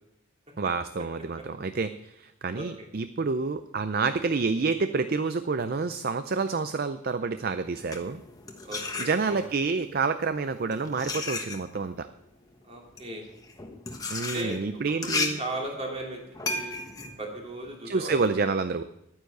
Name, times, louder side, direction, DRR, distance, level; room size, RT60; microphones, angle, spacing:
voice 1, 0.6-8.2 9.0-12.1 14.1-15.4 17.8-18.8, right 4 dB, 45° right, 11 dB, 0.5 m, -28 dB
voice 2, 2.5-2.9 8.6-9.5 12.7-13.3 14.2-14.6 15.0-16.2 16.5-16.8 17.2-18.1, right 1 dB, 30° right, 0 dB, 3.0 m, -36 dB
sound 1, 7.6-9.6 10.4-18.3, left 3 dB, 15° left, 1.2 m, -35 dB
11.5 x 9.6 x 6.6 m, 0.83 s
head